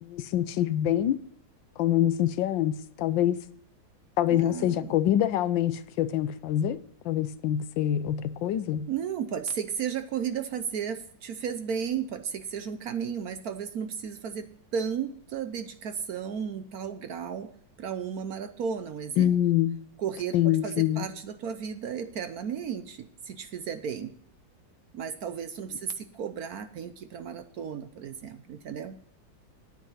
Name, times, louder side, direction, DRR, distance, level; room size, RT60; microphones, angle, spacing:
voice 1, 0.0-1.2 1.8-3.4 4.2-6.8 7.0-8.9 19.2-19.8 20.3-21.1, left 11 dB, 80° left, 1.4 m, -25 dB
voice 2, 4.3-5.0 8.9-17.5 17.8-19.3 20.0-24.1 24.9-29.0, right 7 dB, 60° right, 1.0 m, -34 dB
9.3 x 8.8 x 5.5 m
omnidirectional pair, 2.0 m